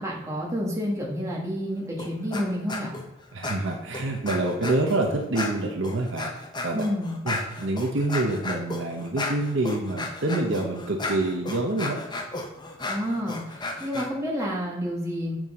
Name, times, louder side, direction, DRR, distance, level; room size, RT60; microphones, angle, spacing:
voice 1, 0.0-2.9 6.7-7.1 12.9-13.4 13.8-15.3, equal, 15° right, -4 dB, 1.3 m, -29 dB
sound 1, 2.0-2.4 2.7-3.0 3.4-5.0 5.3-14.1, left 2 dB, 20° left, 0.7 m, -34 dB
voice 2, 3.3-6.3 6.6-6.8 7.2-12.0, right 2 dB, 55° right, 2 dB, 0.8 m, -26 dB
7.3 x 6.2 x 3.7 m, 0.98 s
head